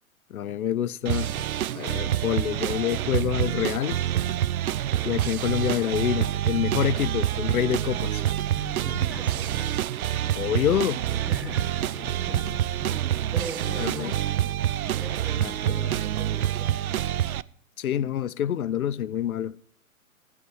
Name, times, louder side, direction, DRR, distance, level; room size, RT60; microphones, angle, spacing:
voice 1, 0.3-1.5 1.7-4.0 5.0-8.2 10.4-11.1 13.8-14.1 15.4-15.9 17.8-19.6, left 10 dB, 80° left, 0.6 m, -27 dB
sound 1, 1.1-17.4, right 11 dB, 80° right, 0.6 m, -27 dB
voice 2, 8.5-10.3 11.1-14.1 15.0-16.8, right 1 dB, 5° right, 2.1 m, -40 dB
sound 2, 11.3-12.3 13.2-14.3, right 9 dB, 30° right, 2.3 m, -57 dB
16.0 x 8.7 x 3.3 m
hypercardioid pair, 120°, 43 cm